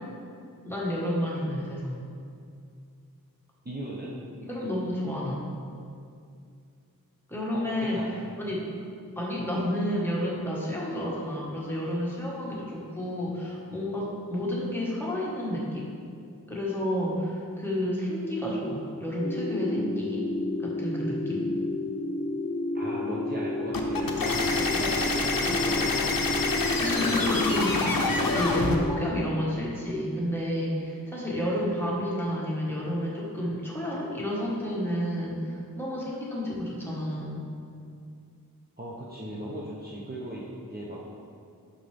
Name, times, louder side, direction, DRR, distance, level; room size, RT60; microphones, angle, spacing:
voice 1, 0.6-2.0 4.5-5.5 7.3-8.0 8.4-8.7 9.1-15.9 16.5-20.4 20.6-21.5 25.4-25.6 26.8-37.4, equal, 5° left, -6 dB, 1.5 m, -30 dB
voice 2, 3.6-4.1 7.5-8.2 22.7-26.1 38.8-41.0, right 1 dB, 25° right, -6 dB, 0.8 m, -37 dB
sound 1, 19.2-29.1, left 2 dB, 25° left, 0.4 m, -31 dB
sound 2, 23.7-28.8, left 3 dB, 65° left, 0.7 m, -27 dB
6.3 x 5.6 x 3.4 m, 2.4 s
wide cardioid pair, 50°, 36 cm